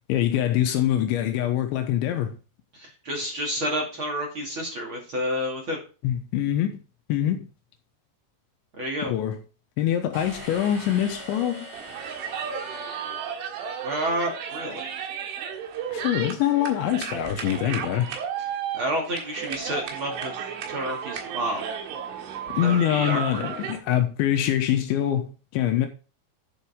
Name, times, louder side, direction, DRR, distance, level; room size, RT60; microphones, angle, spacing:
voice 1, 0.1-2.3 6.0-6.8 7.1-7.5 9.0-9.4 9.8-11.7 15.9-18.1 22.5-25.9, left 11 dB, 80° left, 3.2 m, -24 dB
voice 2, 2.7-5.8 8.8-9.1 12.4-13.2 13.8-14.9 18.7-20.3 20.7-21.6 22.6-23.4, equal, 35° right, 2.3 m, -30 dB
sound 1, 10.1-13.9, equal, 20° right, 2.7 m, -42 dB
sound 2, 11.7-23.8, right 8 dB, 90° right, 4.1 m, -34 dB
10.5 x 7.2 x 3.6 m
omnidirectional pair, 5.4 m